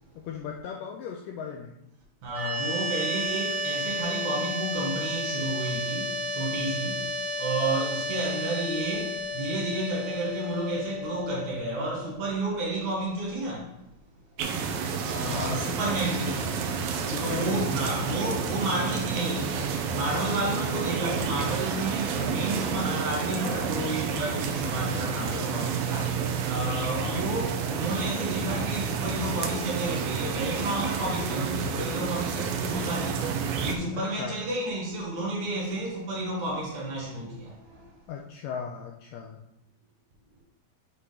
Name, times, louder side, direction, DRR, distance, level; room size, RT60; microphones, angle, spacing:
voice 1, 0.2-1.7 15.3-15.6 17.0-17.6 26.9-27.2 33.9-34.3 38.1-39.4, left 7 dB, 90° left, 1.9 m, -36 dB
voice 2, 2.2-13.8 15.0-38.0, right 1 dB, 60° right, 2.2 m, -31 dB
sound 1, 2.3-13.4, equal, 15° right, 1.6 m, -33 dB
sound 2, 14.4-33.7, right 6 dB, 80° right, 2.3 m, -30 dB
8.1 x 3.7 x 4.8 m
omnidirectional pair, 4.5 m